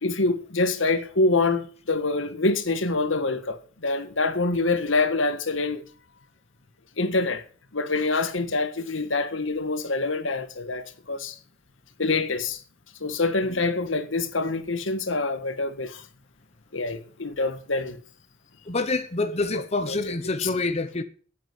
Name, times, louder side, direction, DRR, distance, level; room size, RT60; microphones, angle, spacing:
voice 1, 0.0-5.8 7.0-7.4 7.7-11.4 12.0-12.6 13.0-16.0 16.7-18.0 19.5-20.0 20.4-20.5, left 3 dB, 80° left, 1.6 m, -26 dB
voice 2, 18.7-21.0, left 3 dB, 30° left, 0.9 m, -27 dB
10.0 x 9.3 x 9.4 m
head